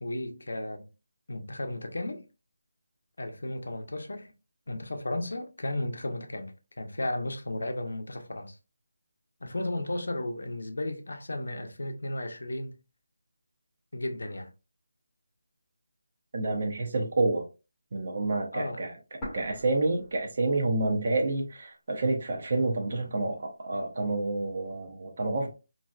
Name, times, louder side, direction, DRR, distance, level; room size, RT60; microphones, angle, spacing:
voice 1, 0.0-0.9 1.3-2.2 3.2-4.3 4.7-8.6 9.4-12.8 13.9-14.5 18.5-18.8, left 1 dB, 80° left, 0.7 m, -34 dB
voice 2, 16.3-17.5 17.9-18.9 19.3-25.5, right 2 dB, 35° right, 0.6 m, -28 dB
sound 1, 19.2-21.2 21.4-21.5 22.3-23.2, equal, 5° left, 0.8 m, -44 dB
3.2 x 2.6 x 2.3 m
figure-of-eight pair, 180°, 0 cm